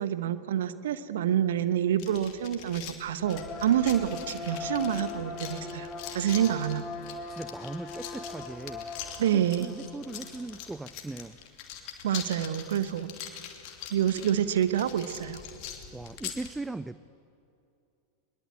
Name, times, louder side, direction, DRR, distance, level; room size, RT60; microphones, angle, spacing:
voice 1, 0.0-5.9 6.1-6.8 9.2-9.7 12.0-13.1 13.9-15.4, right 10 dB, 60° right, 12 dB, 1.1 m, -27 dB
sound 1, 2.0-16.5, left 9 dB, 45° left, 2.8 m, -43 dB
sound 2, 3.3-10.8, left 4 dB, 25° left, 4.0 m, -40 dB
voice 2, 7.3-8.9 9.3-11.4 15.9-17.1, right 2 dB, 5° right, 16 dB, 0.5 m, -39 dB
22.0 x 22.0 x 8.2 m, 2.6 s
figure-of-eight pair, 90°, 0 cm